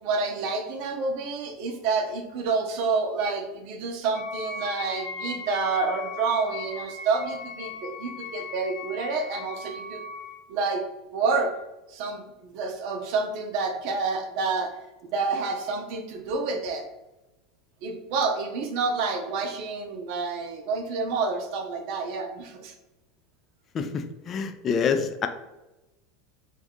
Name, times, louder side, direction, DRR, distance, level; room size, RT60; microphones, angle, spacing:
voice 1, 0.0-10.0 10.5-10.8 11.1-11.5 11.9-14.7 15.0-16.8 17.8-22.7, right 4 dB, 60° right, 4 dB, 0.6 m, -28 dB
Wind instrument woodwind instrument, 4.1-10.5, left 4 dB, 60° left, 1.0 m, -38 dB
voice 2, 23.7-25.3, left 6 dB, 35° left, 8 dB, 0.4 m, -27 dB
2.6 x 2.3 x 3.5 m, 1.0 s
hypercardioid pair, 105°, 0 cm